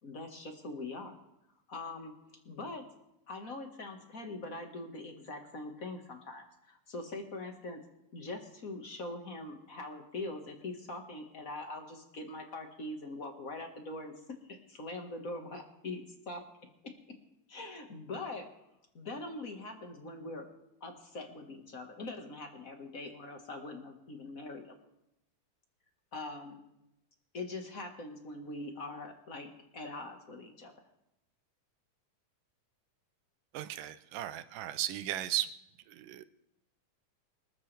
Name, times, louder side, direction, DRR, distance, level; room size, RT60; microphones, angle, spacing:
voice 1, 0.0-1.2 1.7-2.1 2.4-2.8 3.3-7.8 8.1-14.1 14.5-16.4 16.8-16.9 17.5-18.5 18.9-20.5 20.8-24.8 26.1-26.6 27.3-29.5 29.7-30.7, left 2 dB, 35° left, 4 dB, 1.4 m, -42 dB
voice 2, 33.5-35.5 35.9-36.2, right 13 dB, 85° right, 13 dB, 2.4 m, -36 dB
25.0 x 13.5 x 3.4 m, 0.86 s
omnidirectional pair, 3.7 m